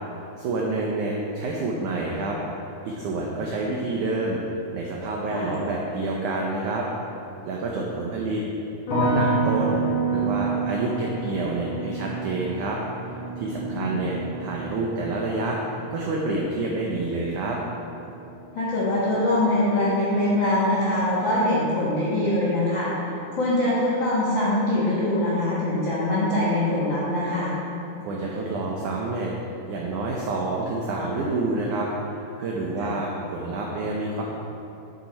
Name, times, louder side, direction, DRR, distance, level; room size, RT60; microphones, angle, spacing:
voice 1, 0.4-2.4 2.9-4.4 4.7-6.9 7.5-8.4 9.0-12.8 13.4-15.6 15.9-17.6 28.1-29.3 29.7-34.2, right 2 dB, 90° right, -2 dB, 1.7 m, -28 dB
sound 1, 8.9-19.9 20.2-21.0, right 3 dB, 55° left, 1.6 m, -30 dB
voice 2, 18.5-27.5 32.8-32.9, left 1 dB, 85° left, -8 dB, 1.0 m, -23 dB
10.5 x 7.4 x 4.3 m, 2.9 s
omnidirectional pair, 4.6 m